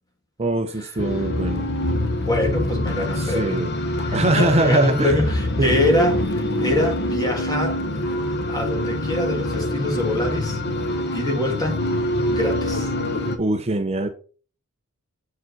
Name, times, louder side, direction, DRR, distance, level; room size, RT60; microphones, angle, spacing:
voice 1, 0.4-1.6 3.2-3.7 4.1-5.1 5.6-5.8 13.4-14.1, right 2 dB, 30° right, 0.6 m, -22 dB
sound 1, 1.0-13.4, left 1 dB, 50° left, 1.0 m, -25 dB
voice 2, 2.2-3.6 4.0-7.8 8.5-10.6 11.1-11.8 12.3-12.9, left 1 dB, 20° left, 2.0 m, -24 dB
7.5 x 4.8 x 4.6 m
head